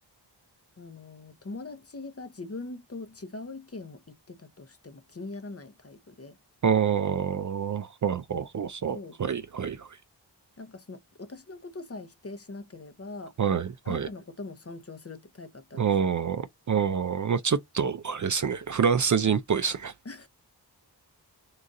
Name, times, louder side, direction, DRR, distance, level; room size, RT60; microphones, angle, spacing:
voice 1, 0.8-6.4 8.9-9.2 10.6-13.4 13.8-15.9 20.0-20.3, left 3 dB, 35° left, 0.7 m, -42 dB
voice 2, 6.6-9.9 13.4-14.1 15.8-19.9, right 7 dB, 45° right, 0.4 m, -27 dB
3.8 x 2.5 x 4.0 m
wide cardioid pair, 45°, 43 cm